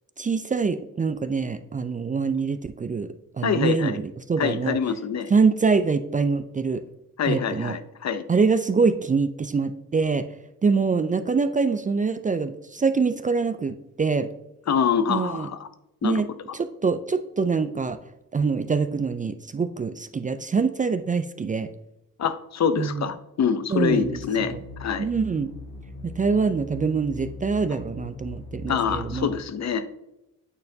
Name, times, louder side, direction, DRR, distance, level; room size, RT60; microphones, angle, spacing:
voice 1, 0.2-3.1 3.3-4.8 5.3-6.8 7.3-7.8 8.3-10.3 10.6-14.3 15.1-15.5 16.0-16.3 16.5-18.0 18.3-21.7 22.8-23.1 23.7-24.2 24.5-24.6 25.0-25.5 26.0-29.3, right 4 dB, 25° right, 10 dB, 0.4 m, -24 dB
voice 2, 3.4-4.0 4.4-5.3 7.2-8.2 14.7-15.7 16.0-16.2 22.2-24.5 24.8-25.1 28.7-29.9, left 7 dB, 55° left, 11 dB, 0.6 m, -25 dB
sound 1, 23.8-29.3, left 2 dB, 80° left, 1.9 m, -40 dB
8.8 x 4.3 x 2.7 m, 0.91 s
cardioid pair, 65°, 33 cm